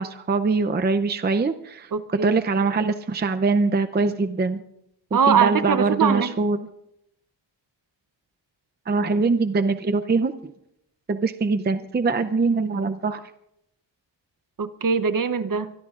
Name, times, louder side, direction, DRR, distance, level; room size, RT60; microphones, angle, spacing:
voice 1, 0.0-4.6 5.1-6.6 8.9-10.3 11.1-13.2, right 4 dB, 25° right, 8 dB, 0.5 m, -23 dB
voice 2, 1.9-2.4 5.1-6.3 14.6-15.7, right 6 dB, 45° right, 12 dB, 0.9 m, -22 dB
24.5 x 23.0 x 2.5 m, 0.80 s
wide cardioid pair, 125°, 44 cm